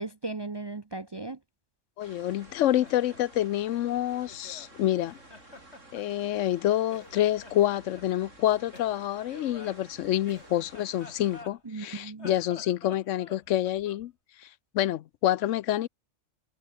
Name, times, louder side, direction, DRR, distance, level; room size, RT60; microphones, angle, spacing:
voice 1, 0.0-1.4 11.7-12.3, right 3 dB, 30° right, 0.5 m, -36 dB
voice 2, 2.0-5.2 5.9-14.1 14.4-15.9, left 13 dB, 80° left, 0.9 m, -27 dB
sound 1, 2.0-11.4, right 2 dB, 85° right, 6.7 m, -53 dB
Laughter, 2.5-4.7 5.1-6.6 6.9-8.1 8.7-11.8 12.1-14.1, left 3 dB, 60° left, 3.8 m, -49 dB
omnidirectional pair, 1.3 m